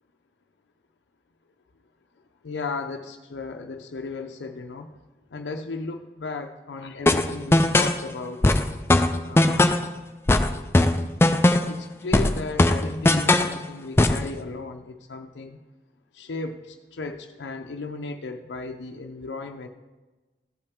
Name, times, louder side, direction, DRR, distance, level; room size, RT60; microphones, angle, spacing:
voice 1, 2.4-4.9 5.3-8.5 9.2-9.7 11.7-15.6 16.1-19.7, left 3 dB, 90° left, 4 dB, 0.5 m, -35 dB
sound 1, 7.1-8.0 8.4-9.9 10.3-11.8 12.1-13.6 14.0-14.3, left 1 dB, 15° left, 0.3 m, -19 dB
15.0 x 5.5 x 3.5 m, 1.2 s
head